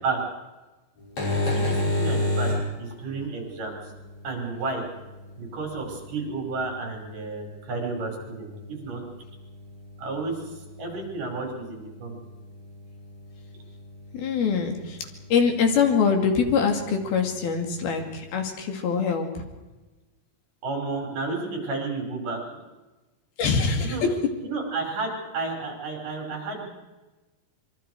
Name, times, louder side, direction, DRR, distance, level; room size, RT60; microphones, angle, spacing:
sound 1, 1.0-18.3, left 1 dB, 45° left, 7.5 m, -34 dB
voice 1, 1.2-2.5 2.8-3.9 4.2-4.8 5.4-9.0 10.0-10.4 10.8-12.2 20.6-22.6 23.7-24.0 24.4-26.7, right 3 dB, 55° right, 1 dB, 7.1 m, -32 dB
voice 2, 14.1-19.5 23.4-24.2, left 6 dB, 75° left, 4 dB, 4.3 m, -24 dB
25.5 x 23.5 x 4.8 m, 1.1 s
omnidirectional pair, 4.4 m